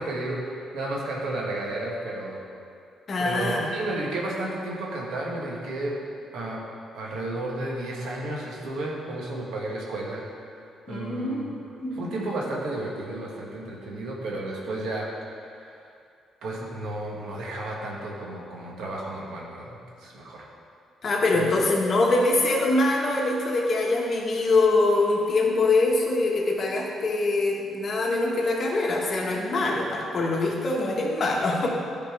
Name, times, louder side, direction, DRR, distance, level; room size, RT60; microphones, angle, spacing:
voice 1, 0.0-2.4 3.2-6.0 6.3-6.6 6.9-10.2 10.5-11.5 12.0-15.7 16.4-20.5, right 2 dB, 80° right, -2 dB, 1.5 m, -32 dB
voice 2, 3.1-3.6 10.9-12.1 21.0-31.7, left 2 dB, 45° left, -1 dB, 1.4 m, -24 dB
11.0 x 4.3 x 4.9 m, 2.4 s
cardioid pair, 90°, 0 cm